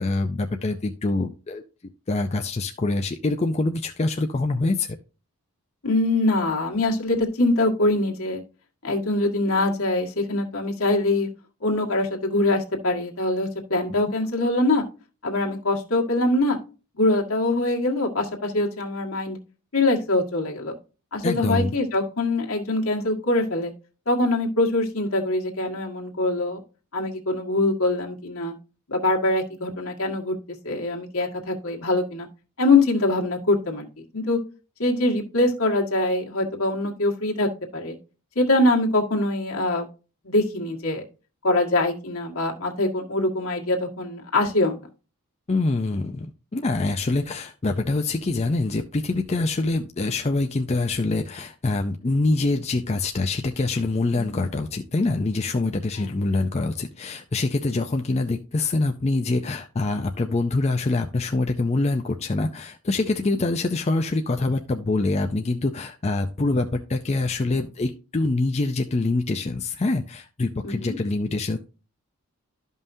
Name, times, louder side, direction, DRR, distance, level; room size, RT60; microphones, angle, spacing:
voice 1, 0.0-1.6 2.1-5.0 21.2-21.7 45.5-71.6, left 2 dB, 30° left, 5 dB, 0.4 m, -25 dB
voice 2, 5.8-8.4 8.8-11.3 11.6-14.8 15.2-16.6 17.0-19.4 19.7-20.8 21.1-23.7 24.1-26.6 26.9-28.5 28.9-30.4 30.6-32.3 32.6-34.4 34.8-38.0 38.4-39.9 40.2-41.0 41.4-44.7 54.1-54.4 55.9-56.1 63.0-63.4 70.6-71.0, left 2 dB, 70° left, 0 dB, 1.7 m, -23 dB
12.5 x 5.5 x 2.7 m, 0.34 s
head